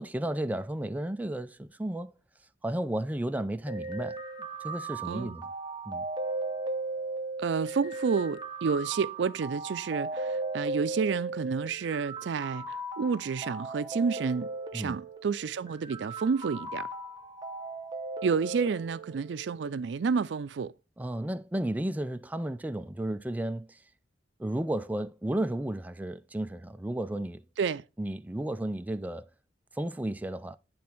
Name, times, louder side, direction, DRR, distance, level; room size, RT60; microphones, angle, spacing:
voice 1, 0.0-2.1 2.6-4.2 4.6-5.5 5.9-6.0 14.7-15.0 21.0-23.8 24.4-27.4 28.0-29.3 29.8-30.6, right 1 dB, 10° right, 0.3 m, -33 dB
sound 1, 3.7-19.7, right 3 dB, 25° right, 0.8 m, -37 dB
voice 2, 5.1-5.4 7.4-16.9 18.2-20.7 27.6-27.8, right 5 dB, 80° right, 0.4 m, -30 dB
10.5 x 3.4 x 4.4 m
head